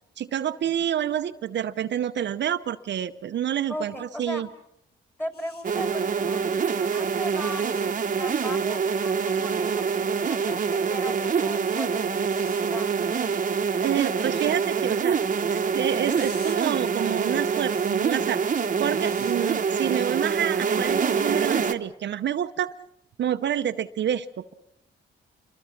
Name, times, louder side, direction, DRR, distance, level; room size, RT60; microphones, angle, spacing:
voice 1, 0.2-4.5 13.8-15.2 15.5-18.4 18.8-22.7 23.2-24.5, right 10 dB, 65° right, 9 dB, 0.8 m, -28 dB
voice 2, 3.7-4.4 5.2-13.0, equal, 10° left, 5 dB, 3.8 m, -38 dB
sound 1, 5.3-5.6 7.4-7.8 9.2-9.4 12.2-12.6 16.1-16.6 17.7-17.9 18.9-19.4 20.8-21.0, left 3 dB, 55° left, 7.1 m, -48 dB
sound 2, 5.6-21.7, right 6 dB, 40° right, 1.1 m, -25 dB
26.5 x 22.5 x 5.9 m, 0.80 s
cardioid pair, 100°, 20 cm